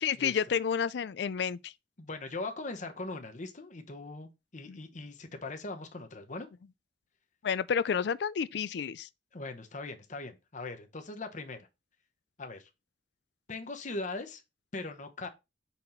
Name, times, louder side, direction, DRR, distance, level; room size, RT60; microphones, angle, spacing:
voice 1, 0.0-1.7 4.7-4.8 7.4-9.1, left 7 dB, 70° left, 0.4 m, -30 dB
voice 2, 2.0-6.5 9.3-11.7 12.4-12.7 13.5-14.4 14.7-15.3, left 2 dB, 45° left, 1.0 m, -40 dB
5.7 x 4.1 x 4.4 m
head